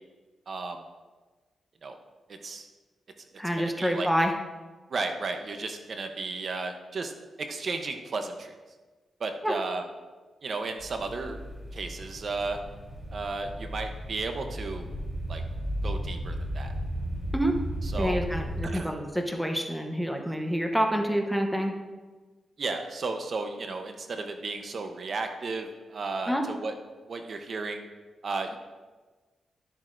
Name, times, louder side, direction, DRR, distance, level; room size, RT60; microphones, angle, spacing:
voice 1, 0.5-0.8 1.8-1.9 2.4-2.7 3.6-4.1 4.9-7.1 7.4-8.5 9.2-9.8 10.4-11.4 11.7-12.6 13.1-14.8 15.3-15.4 15.8-16.7 17.8-18.2 18.6-18.9 22.6-26.7 27.1-27.8 28.2-28.6, right 3 dB, 50° right, 5 dB, 0.8 m, -34 dB
voice 2, 3.4-4.3 9.4-9.5 17.3-17.5 18.0-21.7 26.3-26.4, equal, ahead, 3 dB, 0.8 m, -27 dB
sound 1, 10.8-18.6, equal, 20° right, 2.4 m, -35 dB
12.5 x 7.5 x 2.6 m, 1.3 s
cardioid pair, 105°, 0 cm